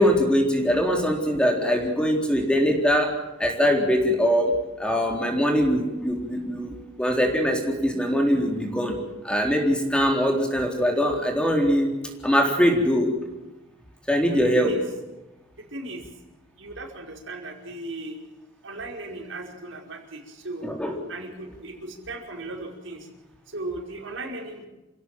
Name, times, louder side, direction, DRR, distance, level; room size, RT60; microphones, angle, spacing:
voice 1, 0.0-3.1 3.4-4.5 4.8-6.7 7.0-9.0 9.2-11.9 12.2-13.1 14.1-14.7 20.6-20.9, equal, 5° left, 2 dB, 3.8 m, -22 dB
voice 2, 14.3-14.8 15.6-16.0 16.6-18.2 18.6-20.7 21.1-23.1 23.5-24.6, right 2 dB, 90° right, 1 dB, 5.3 m, -37 dB
28.0 x 17.0 x 7.8 m, 1.0 s
head